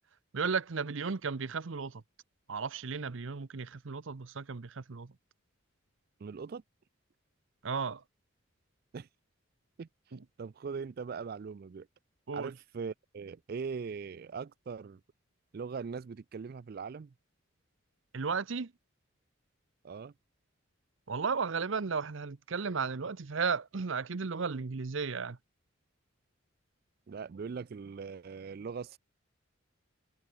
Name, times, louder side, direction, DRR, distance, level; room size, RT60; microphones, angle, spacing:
voice 1, 0.3-2.0 2.5-5.1 7.6-8.0 10.1-10.2 12.3-12.5 18.1-18.7 21.1-25.4, right 5 dB, 65° right, 0.7 m, -34 dB
voice 2, 6.2-6.6 8.9-9.1 9.8-9.9 10.4-11.9 12.3-15.0 15.5-17.1 19.8-20.1 27.1-29.0, right 5 dB, 45° right, 0.3 m, -40 dB
head